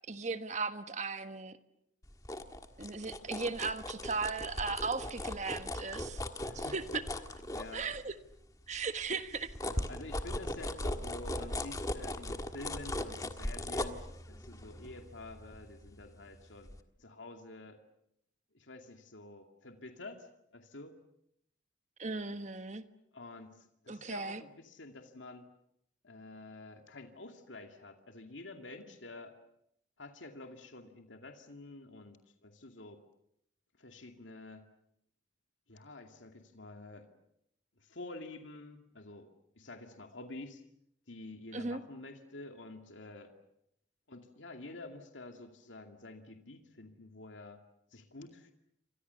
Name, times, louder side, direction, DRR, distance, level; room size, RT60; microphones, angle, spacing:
voice 1, 0.1-1.6 2.8-6.2 6.5-7.0 7.7-8.2 8.7-9.5 22.0-22.8 23.9-24.4 41.5-41.8, right 4 dB, 40° right, 10 dB, 1.4 m, -37 dB
sound 1, 2.0-8.3 8.7-16.3 16.7-16.8, left 1 dB, 20° left, 1.6 m, -39 dB
voice 2, 6.4-6.7 7.5-7.9 9.6-14.0 14.3-16.7 17.0-17.8 18.5-21.0 23.1-25.5 26.0-29.3 30.0-32.2 32.4-33.0 33.8-34.7 35.7-37.1 37.8-39.3 39.6-40.6 41.1-43.3 44.1-47.6 47.9-48.5, left 2 dB, 85° left, 5 dB, 2.4 m, -49 dB
29.0 x 25.0 x 7.0 m, 0.76 s
head